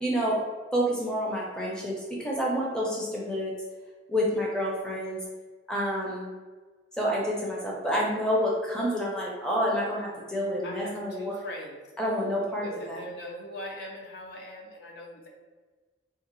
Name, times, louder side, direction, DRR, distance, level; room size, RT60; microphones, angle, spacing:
voice 1, 0.0-0.4 0.7-3.5 4.1-5.2 5.7-6.3 6.9-11.4 12.0-13.0, equal, 5° left, -4 dB, 0.5 m, -28 dB
voice 2, 10.6-11.8 12.6-15.3, left 1 dB, 60° left, -1 dB, 0.5 m, -41 dB
3.3 x 2.4 x 3.0 m, 1.4 s
head